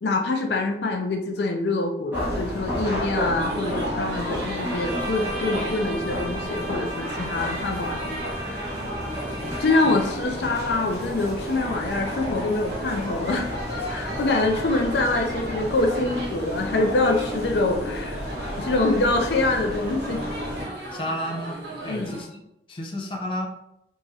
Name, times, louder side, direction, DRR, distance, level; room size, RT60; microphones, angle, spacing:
voice 1, 0.0-8.7 9.6-13.5 13.9-18.2 18.6-20.2 21.9-22.1, left 2 dB, 75° left, 4 dB, 0.5 m, -25 dB
sound 1, 2.1-20.6, equal, 10° right, 1.2 m, -32 dB
sound 2, 3.4-22.2, right 1 dB, 75° right, 1.2 m, -37 dB
Bowed string instrument, 4.5-10.4, right 1 dB, 40° right, 0.5 m, -37 dB
voice 2, 20.9-21.6 21.8-22.4 22.7-23.5, equal, 30° left, 0 dB, 0.5 m, -31 dB
3.5 x 2.9 x 2.8 m, 0.82 s
head